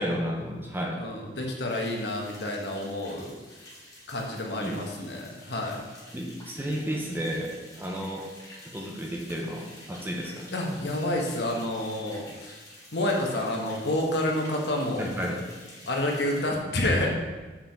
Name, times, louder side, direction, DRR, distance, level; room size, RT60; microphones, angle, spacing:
voice 1, 0.0-1.0 4.6-4.9 6.1-8.3 8.7-10.5 15.0-15.4, equal, 10° right, 0 dB, 0.8 m, -32 dB
voice 2, 1.0-3.4 4.1-5.9 10.5-12.6 12.9-15.1 15.9-17.1, left 1 dB, 70° left, 0 dB, 1.2 m, -29 dB
sound 1, 1.7-16.4, left 1 dB, 20° left, 1.7 m, -49 dB
5.6 x 4.9 x 5.8 m, 1.3 s
head